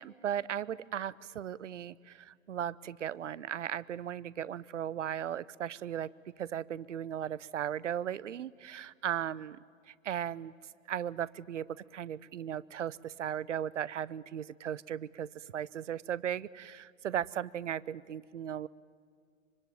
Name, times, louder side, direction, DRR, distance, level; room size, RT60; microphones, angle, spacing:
voice 1, 0.0-6.1 6.4-9.6 9.9-10.5 10.9-18.7, right 10 dB, 65° right, 21 dB, 0.7 m, -37 dB
25.0 x 24.5 x 9.2 m, 2.1 s
figure-of-eight pair, 105°, 40 cm